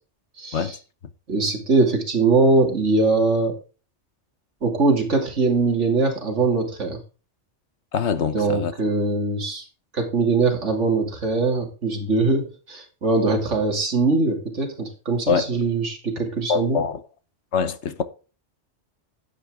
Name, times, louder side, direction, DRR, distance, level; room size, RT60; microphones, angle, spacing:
voice 1, 0.4-0.8 1.3-3.5 4.6-7.0 8.3-9.6 9.9-16.8, right 3 dB, 90° right, 2.9 m, -22 dB
voice 2, 7.9-8.7 15.3-15.5 16.5-17.0 17.5-18.0, left 6 dB, 70° left, 1.3 m, -23 dB
11.5 x 8.6 x 3.6 m
omnidirectional pair, 1.2 m